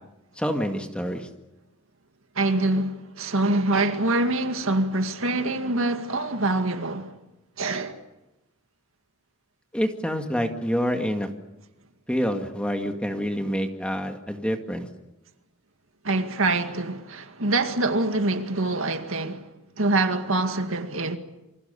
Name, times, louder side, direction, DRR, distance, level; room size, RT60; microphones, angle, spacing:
voice 1, 0.4-1.3 9.7-11.3 12.1-14.9, equal, 5° left, 2.0 m, -27 dB
voice 2, 2.4-7.1 7.6-8.0 16.0-19.5 19.8-21.2, right 2 dB, 70° right, 2.1 m, -25 dB
28.5 x 25.0 x 7.0 m
head